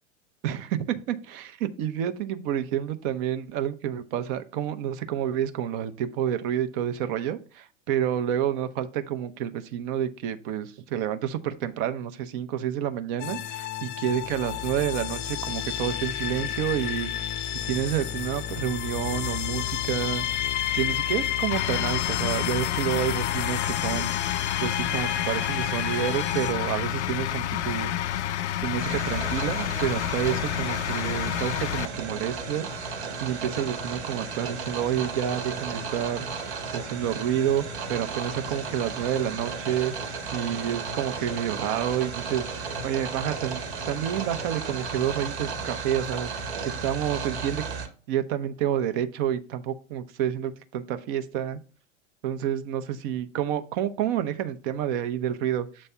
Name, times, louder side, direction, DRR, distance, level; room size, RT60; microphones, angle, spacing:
voice 1, 0.4-17.3 17.6-20.5 20.7-24.1 24.6-28.2 28.6-32.7 33.2-37.6 37.9-39.9 40.3-43.6 43.9-46.3 46.6-47.6 48.1-51.6 52.2-55.9, right 10 dB, 45° right, 9 dB, 0.8 m, -29 dB
sound 1, 13.2-26.5, left 11 dB, 30° left, 0.6 m, -31 dB
sound 2, 21.5-31.8, left 12 dB, 70° left, 0.5 m, -29 dB
sound 3, 28.8-47.9, right 4 dB, 65° right, 1.4 m, -34 dB
7.2 x 3.2 x 5.4 m, 0.39 s
figure-of-eight pair, 90°, 35 cm